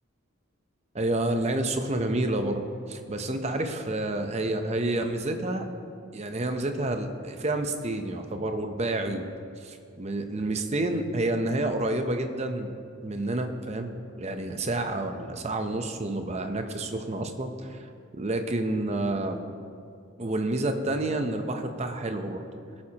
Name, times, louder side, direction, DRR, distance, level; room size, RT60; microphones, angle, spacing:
voice 1, 0.9-5.7 6.1-9.2 9.6-12.7 13.0-19.4 20.2-22.4, right 2 dB, 30° right, 6 dB, 0.7 m, -29 dB
19.5 x 8.7 x 2.9 m, 2.5 s
head